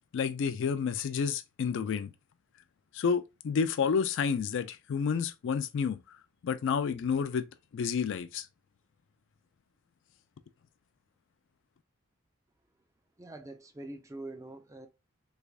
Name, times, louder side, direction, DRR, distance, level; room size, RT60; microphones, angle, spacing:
voice 1, 0.1-2.1 2.9-6.0 6.4-7.4 7.7-8.5, left 6 dB, 60° left, 0.3 m, -30 dB
voice 2, 13.2-14.9, right 2 dB, 15° right, 0.4 m, -44 dB
3.4 x 3.2 x 2.3 m
head